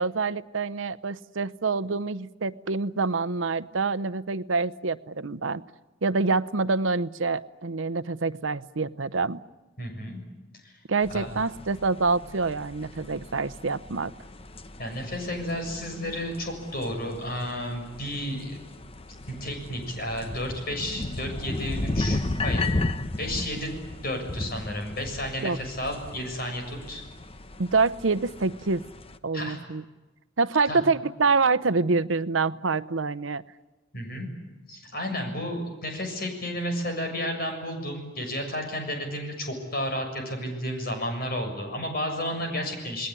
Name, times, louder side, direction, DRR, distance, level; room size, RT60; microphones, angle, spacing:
voice 1, 0.0-5.6 6.0-9.4 10.9-14.1 25.4-25.6 27.6-28.9 29.2-29.8 30.4-33.4, right 4 dB, 75° right, 16 dB, 0.8 m, -26 dB
voice 2, 9.8-10.2 10.6-10.8 11.1-11.3 14.8-18.6 19.3-22.7 23.2-23.7 24.0-27.0 29.3-29.6 30.7-30.8 33.9-34.3 34.7-43.1, equal, 50° left, 4 dB, 7.1 m, -32 dB
sound 1, 11.0-29.2, left 2 dB, 30° left, 1.0 m, -35 dB
29.0 x 20.0 x 9.8 m, 1.2 s
head